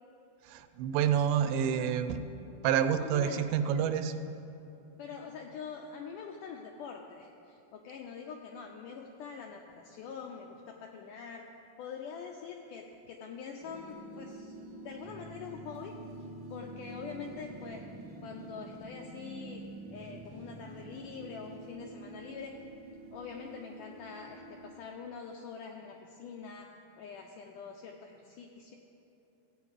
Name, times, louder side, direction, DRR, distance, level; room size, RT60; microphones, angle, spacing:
voice 1, 0.5-2.2 2.6-4.1, right 8 dB, 85° right, 10 dB, 2.5 m, -28 dB
voice 2, 3.0-3.4 5.0-11.5 11.8-14.6 14.8-16.0 16.5-17.9 18.2-19.6 19.9-22.5 23.1-26.7 27.0-28.8, left 6 dB, 85° left, 2 dB, 1.8 m, -44 dB
sound 1, 13.6-24.7, right 2 dB, 65° right, 1.1 m, -47 dB
15.0 x 8.6 x 4.7 m, 2.9 s
omnidirectional pair, 4.4 m